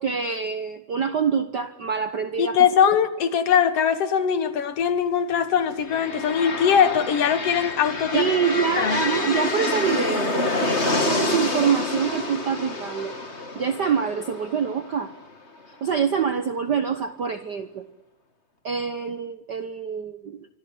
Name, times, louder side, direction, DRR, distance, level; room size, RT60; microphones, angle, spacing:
voice 1, 0.0-2.6 8.1-13.1 13.5-15.1 15.7-17.9 18.6-20.5, right 6 dB, 55° right, 10 dB, 1.2 m, -25 dB
voice 2, 2.4-8.3 8.8-9.0, left 8 dB, 60° left, 12 dB, 2.3 m, -21 dB
sound 1, 5.7-15.6, left 3 dB, 25° left, 2.6 m, -28 dB
26.0 x 25.5 x 7.9 m, 0.83 s
omnidirectional pair, 3.3 m